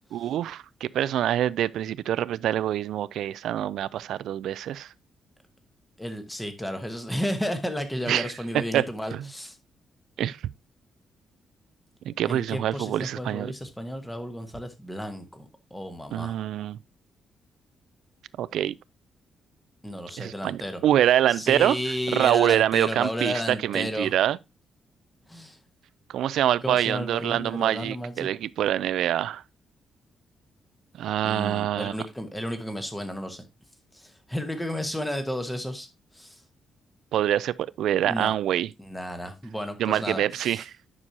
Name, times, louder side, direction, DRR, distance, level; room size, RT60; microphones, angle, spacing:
voice 1, 0.1-4.9 8.1-8.3 8.7-8.8 9.1-9.3 10.2-10.4 12.1-13.5 16.1-16.8 18.4-18.7 20.2-21.8 22.1-24.4 26.1-29.4 31.0-31.9 37.1-38.7 39.8-40.6, right 11 dB, 80° right, 0.3 m, -25 dB
voice 2, 6.0-9.6 12.2-16.4 19.8-20.8 21.3-24.1 25.3-25.6 26.6-28.3 31.2-33.4 33.9-35.9 36.1-36.4 38.1-38.3 38.8-40.6, equal, 5° left, 1.2 m, -33 dB
9.8 x 6.1 x 2.8 m
cardioid pair, 150°, 0 cm